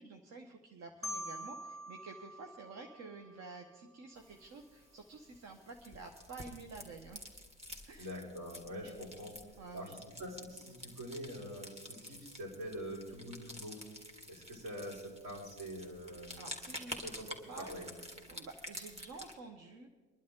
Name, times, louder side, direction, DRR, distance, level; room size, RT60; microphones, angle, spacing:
voice 1, 0.0-7.2 7.9-8.1 9.6-9.9 16.4-17.7 18.3-19.9, right 3 dB, 50° right, 3 dB, 1.5 m, -50 dB
Marimba xylophone, 1.0-3.9, equal, 10° left, 0.7 m, -46 dB
sound 1, 4.2-19.3, equal, 15° right, 2.4 m, -50 dB
voice 2, 8.0-9.4 9.7-13.8 14.3-16.3 17.0-17.9, equal, 65° right, -4 dB, 5.9 m, -45 dB
23.0 x 11.5 x 3.9 m, 1.4 s
hypercardioid pair, 60°, 35 cm